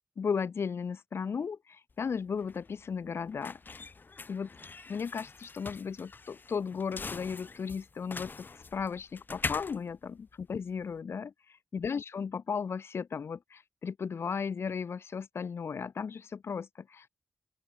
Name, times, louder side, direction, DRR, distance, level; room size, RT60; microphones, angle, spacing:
voice 1, 0.2-3.9 4.3-4.5 4.9-17.1, left 6 dB, 85° left, 2.4 m, -35 dB
sound 1, 1.9-11.0, left 4 dB, 50° left, 3.8 m, -43 dB
open air
wide cardioid pair, 90°, 4 cm